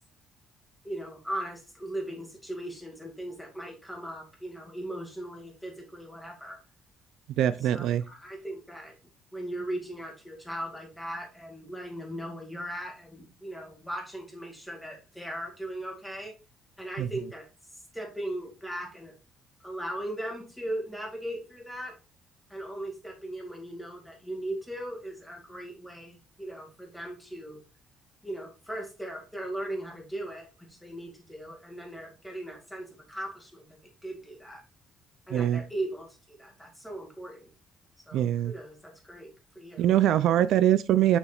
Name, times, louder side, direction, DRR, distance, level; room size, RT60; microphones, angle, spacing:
voice 1, 0.8-6.6 7.7-8.9 9.3-16.3 16.8-17.5 17.9-19.1 19.6-21.9 22.5-27.6 28.2-33.7 34.0-34.6 35.3-37.5 38.1-39.3 39.6-39.9, right 1 dB, ahead, 2.1 m, -38 dB
voice 2, 7.4-8.0 17.0-17.1 35.3-35.6 38.1-38.5 39.8-41.2, right 11 dB, 70° right, 0.3 m, -23 dB
6.3 x 6.2 x 2.4 m
cardioid pair, 135°, 0 cm